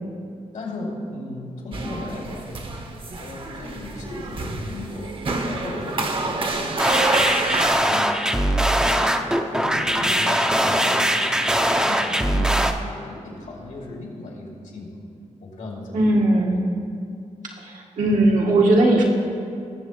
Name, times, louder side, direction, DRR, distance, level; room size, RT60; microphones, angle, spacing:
voice 1, 0.5-2.6 3.2-8.1 8.4-15.0 15.4-16.0 16.5-16.6, left 2 dB, 80° left, -2 dB, 2.6 m, -36 dB
sound 1, 1.7-7.7, right 3 dB, 40° right, 0.9 m, -28 dB
sound 2, 6.8-12.7, right 1 dB, 5° right, 0.6 m, -21 dB
voice 2, 15.9-16.6 17.6-19.0, right 1 dB, 80° right, -2 dB, 1.6 m, -18 dB
19.5 x 6.9 x 3.1 m, 2.4 s
cardioid pair, 100°, 13 cm